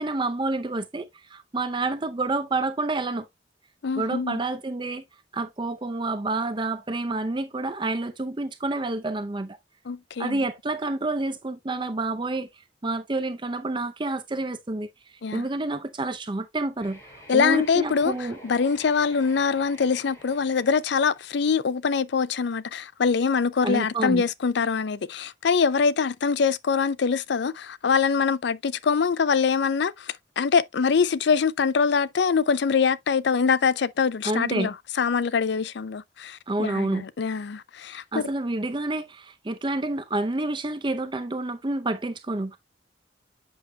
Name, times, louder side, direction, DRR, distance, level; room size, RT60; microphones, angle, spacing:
voice 1, 0.0-3.3 4.0-5.0 5.3-9.6 10.2-14.9 15.3-17.0 17.3-18.4 23.6-24.2 34.2-34.7 36.5-37.1 38.1-42.6, right 2 dB, 25° right, 0.6 m, -28 dB
voice 2, 3.8-4.4 9.9-10.4 15.2-15.5 17.3-18.1 18.4-38.3, left 5 dB, 65° left, 0.5 m, -24 dB
sound 1, 16.8-21.7, equal, 15° left, 3.3 m, -49 dB
8.0 x 6.4 x 2.2 m
head